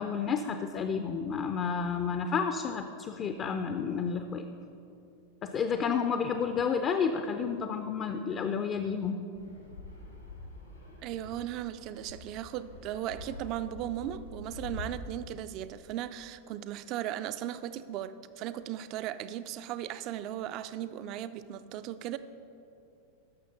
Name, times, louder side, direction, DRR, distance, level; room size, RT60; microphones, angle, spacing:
voice 1, 0.0-4.5 5.4-9.2, left 6 dB, 30° left, 8 dB, 0.4 m, -31 dB
Fixed-wing aircraft airplane, 9.3-14.8, left 3 dB, 85° left, 2.2 m, -46 dB
voice 2, 11.0-22.2, right 11 dB, 40° right, 13 dB, 0.3 m, -37 dB
12.5 x 6.3 x 3.9 m, 2.7 s
figure-of-eight pair, 90°, 0 cm